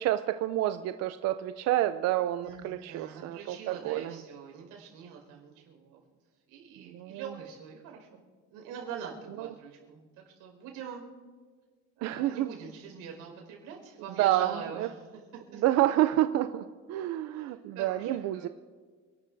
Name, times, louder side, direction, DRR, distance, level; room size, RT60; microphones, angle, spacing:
voice 1, 0.0-4.1 6.8-7.2 9.4-9.5 12.0-12.5 14.2-14.9 15.6-18.5, right 14 dB, 55° right, 10 dB, 0.5 m, -28 dB
voice 2, 2.4-6.0 6.5-8.2 8.5-11.0 12.0-15.2 15.5-15.6 17.3-18.5, right 7 dB, 90° right, 1 dB, 5.2 m, -44 dB
29.5 x 12.5 x 2.7 m, 1.5 s
cardioid pair, 150°, 30 cm